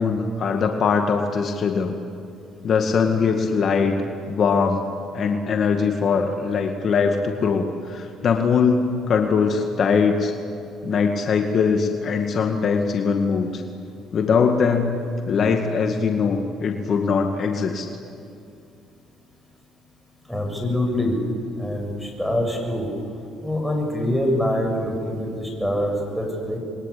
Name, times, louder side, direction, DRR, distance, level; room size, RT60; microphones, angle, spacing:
voice 1, 0.0-2.0 2.6-4.0 4.3-4.8 5.1-10.3 10.8-13.6 14.1-15.0 15.3-17.9, left 5 dB, 50° left, 4 dB, 2.1 m, -21 dB
voice 2, 20.3-21.1 21.6-22.9 23.4-26.6, left 1 dB, ahead, 2 dB, 7.4 m, -24 dB
29.0 x 22.5 x 8.7 m, 2.5 s
cardioid pair, 100°, 0 cm